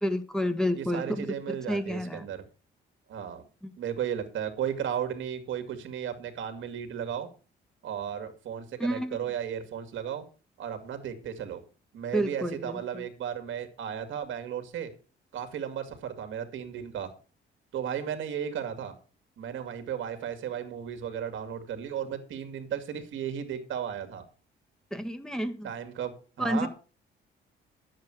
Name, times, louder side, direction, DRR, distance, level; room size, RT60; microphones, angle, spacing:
voice 1, 0.0-1.3 1.7-2.3 8.8-9.2 12.1-13.0 24.9-25.7 26.4-26.7, equal, 5° left, 7 dB, 1.5 m, -29 dB
voice 2, 0.7-2.5 3.1-3.5 3.8-7.3 7.8-10.2 10.6-11.6 11.9-14.9 15.3-17.1 17.7-19.0 19.4-24.2 25.6-26.7, right 8 dB, 75° right, 8 dB, 2.2 m, -35 dB
10.5 x 7.7 x 6.0 m, 0.36 s
cardioid pair, 90°, 20 cm